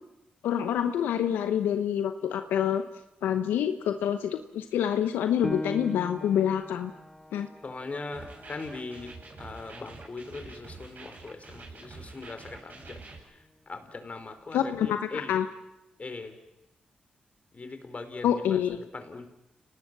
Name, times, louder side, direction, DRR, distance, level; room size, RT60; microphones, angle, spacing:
voice 1, 0.4-2.8 3.2-6.9 7.3-7.5 14.5-15.5 18.2-18.8, left 9 dB, 90° left, 8 dB, 0.9 m, -27 dB
Piano, 5.4-10.6 11.1-11.2 11.8-12.3, left 1 dB, 10° left, 1.8 m, -41 dB
voice 2, 7.6-9.1 9.4-13.0 13.7-15.4 16.0-16.4 17.5-18.6 18.9-19.3, left 3 dB, 45° left, 8 dB, 4.2 m, -40 dB
sound 1, 8.1-13.2, right 3 dB, 60° right, 7.8 m, -47 dB
29.5 x 19.0 x 7.5 m, 0.92 s
supercardioid pair, 45°, 3 cm